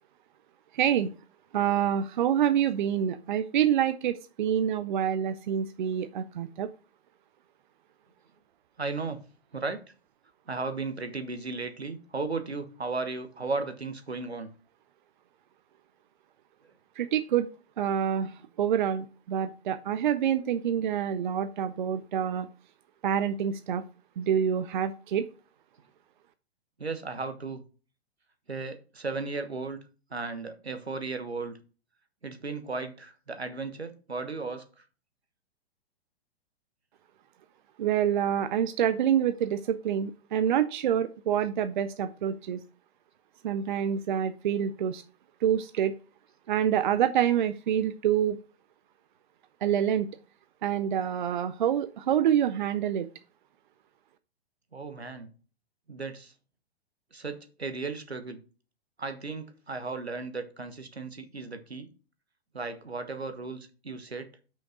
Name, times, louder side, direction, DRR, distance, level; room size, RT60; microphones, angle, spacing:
voice 1, 0.7-1.1 1.5-6.7 17.0-17.5 17.8-18.3 18.6-22.5 23.0-23.8 24.2-25.2 37.8-42.6 43.4-45.0 45.4-45.9 46.5-48.4 49.6-50.1 50.6-53.1, right 9 dB, 50° right, 0.6 m, -27 dB
voice 2, 8.8-9.2 9.5-9.8 10.5-14.5 26.8-27.6 28.5-29.8 30.1-31.6 32.2-34.9 54.7-55.3 55.9-56.3 57.1-58.4 59.0-61.9 62.5-64.3, right 3 dB, 85° right, 1.2 m, -35 dB
5.8 x 5.1 x 4.9 m
figure-of-eight pair, 110°, 31 cm